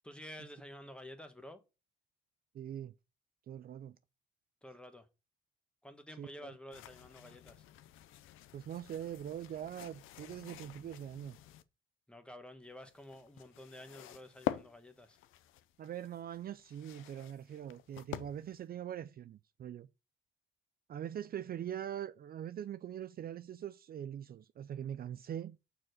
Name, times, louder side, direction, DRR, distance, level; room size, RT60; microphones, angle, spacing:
voice 1, 0.0-1.6 4.6-5.1 5.8-7.6 12.1-15.2, left 1 dB, 5° left, 1.3 m, -51 dB
voice 2, 2.5-2.9 3.5-4.0 6.2-6.5 8.5-11.4 15.8-19.9 20.9-25.6, right 10 dB, 50° right, 0.4 m, -42 dB
sound 1, 6.7-11.6 12.6-18.6, left 13 dB, 90° left, 0.6 m, -46 dB
6.3 x 4.6 x 6.3 m
cardioid pair, 90°, 20 cm